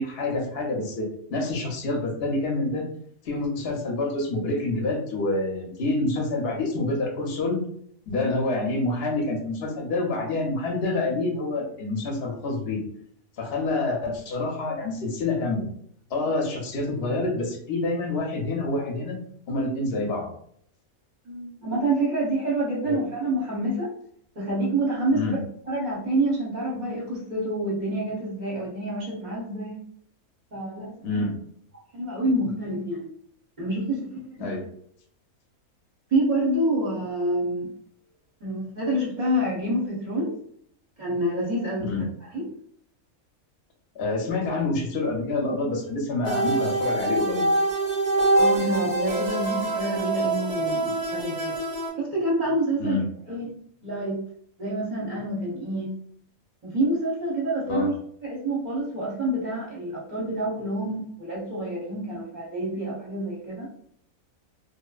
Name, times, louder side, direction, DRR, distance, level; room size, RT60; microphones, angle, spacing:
voice 1, 0.0-2.8 3.2-7.6 8.1-12.8 13.4-15.7 16.1-19.2 19.5-20.3 22.9-23.0 25.1-25.4 31.0-31.3 34.4-34.7 41.8-42.0 43.9-47.5 52.8-53.0 57.7-57.9, left 2 dB, 55° left, 1 dB, 0.8 m, -27 dB
voice 2, 21.3-23.9 24.4-25.4 25.7-29.8 30.5-31.3 31.9-33.1 33.6-34.5 36.1-37.7 38.4-40.3 41.0-41.8 42.3-42.5 48.4-51.5 52.0-53.0 53.3-53.5 53.8-54.2 54.6-55.9 56.6-57.9 58.2-63.7, right 1 dB, 40° right, -6 dB, 0.7 m, -27 dB
sound 1, 46.2-51.9, right 2 dB, 85° right, 0.3 m, -25 dB
3.0 x 2.0 x 2.3 m, 0.65 s
omnidirectional pair, 1.5 m